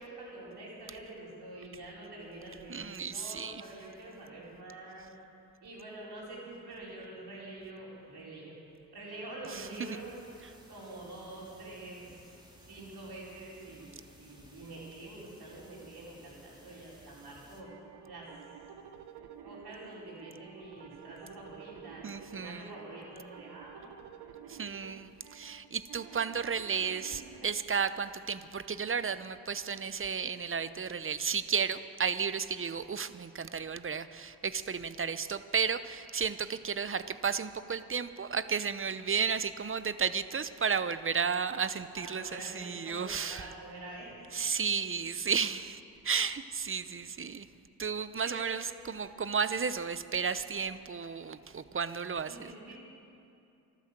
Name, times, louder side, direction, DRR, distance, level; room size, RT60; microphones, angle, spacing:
voice 1, 0.0-5.1 5.6-8.6 8.9-10.1 10.7-12.1 12.6-17.7 18.1-18.3 19.4-24.0 41.9-44.3 48.2-48.5 52.3-52.8, right 2 dB, 70° right, -5 dB, 4.7 m, -46 dB
voice 2, 2.7-3.6 9.5-9.9 22.0-22.7 24.5-43.5 44.3-47.5 47.8-52.5, right 6 dB, 30° right, 13 dB, 0.7 m, -33 dB
sound 1, 9.6-17.6, right 1 dB, 10° right, 2.6 m, -58 dB
sound 2, 17.6-27.5, right 8 dB, 90° right, 0.9 m, -51 dB
13.0 x 12.5 x 7.6 m, 2.7 s
supercardioid pair, 45°, 39 cm